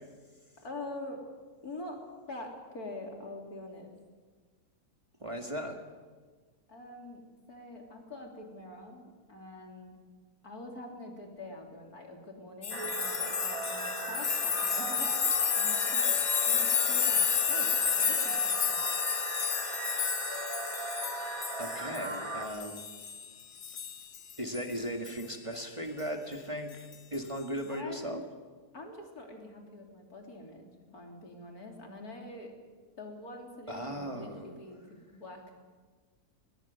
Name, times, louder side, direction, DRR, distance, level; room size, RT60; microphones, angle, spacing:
voice 1, 0.6-1.2 1.6-2.0 2.3-4.0 6.7-10.0 10.4-15.1 15.6-16.1 16.5-17.2 17.5-18.8 27.7-28.2 28.7-32.5 33.0-35.5, left 2 dB, 70° left, 2 dB, 3.8 m, -45 dB
voice 2, 5.2-5.8 21.6-22.9 24.4-28.3 33.7-34.8, equal, 20° right, 4 dB, 1.8 m, -37 dB
sound 1, 12.6-23.3 23.6-24.6 25.1-25.2 26.9-27.1, left 7 dB, 45° left, 1.0 m, -30 dB
sound 2, 12.7-22.5, right 3 dB, 60° right, 3.1 m, -38 dB
20.5 x 20.5 x 8.1 m, 1.5 s
omnidirectional pair, 1.7 m